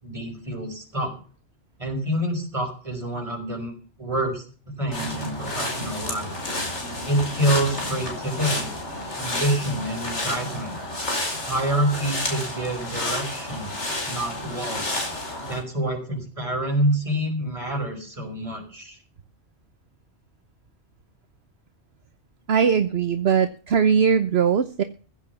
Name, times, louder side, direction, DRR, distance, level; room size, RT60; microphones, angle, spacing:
voice 1, 0.0-1.1 1.8-3.7 4.0-4.4 4.7-6.3 7.1-8.7 9.2-10.8 11.5-13.7 14.0-15.0 15.4-19.0, right 1 dB, 30° right, 2 dB, 5.6 m, -27 dB
Walking in Long Grass, 4.9-15.6, left 1 dB, 90° left, 5.2 m, -30 dB
voice 2, 22.5-24.8, right 7 dB, 65° right, 11 dB, 1.1 m, -20 dB
16.0 x 8.7 x 7.0 m, 0.39 s
omnidirectional pair, 1.2 m